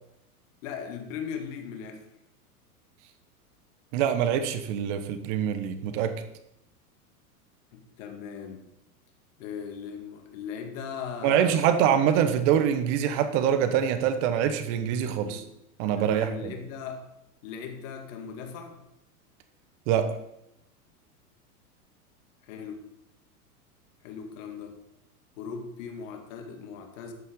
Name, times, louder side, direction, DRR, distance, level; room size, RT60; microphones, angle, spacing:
voice 1, 0.6-2.0 7.7-8.6 9.4-11.7 15.2-15.5 15.9-17.0 17.4-18.8 22.4-22.8 24.0-24.8 25.4-27.1, left 6 dB, 55° left, 4 dB, 2.1 m, -38 dB
voice 2, 3.9-6.1 11.2-15.4 15.8-16.5 19.9-20.1, right 9 dB, 50° right, 9 dB, 1.5 m, -24 dB
12.5 x 8.3 x 3.9 m, 0.83 s
hypercardioid pair, 100°, 46 cm